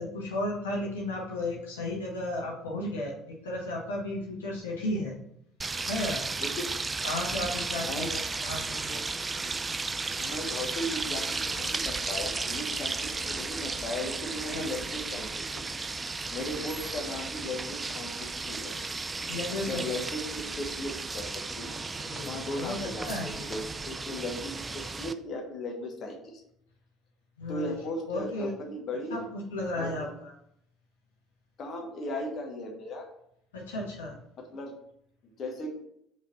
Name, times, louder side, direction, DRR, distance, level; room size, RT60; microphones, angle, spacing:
voice 1, 0.0-5.2 5.9-6.2 7.0-9.0 14.5-14.6 19.3-19.8 22.1-22.7 23.0-23.5 27.4-27.8 28.1-28.5 29.1-30.3 33.5-34.1, left 1 dB, 80° left, -3 dB, 1.4 m, -34 dB
sound 1, 5.6-25.1, right 3 dB, 25° right, 0.4 m, -34 dB
voice 2, 6.4-6.8 7.8-8.1 9.4-9.6 10.2-15.7 16.3-18.8 19.7-21.8 22.2-26.4 27.5-29.2 29.7-30.1 31.6-33.1 34.4-34.7 35.4-35.7, left 1 dB, 45° left, 2 dB, 1.4 m, -37 dB
5.1 x 3.9 x 5.6 m, 0.74 s
hypercardioid pair, 60°, 0 cm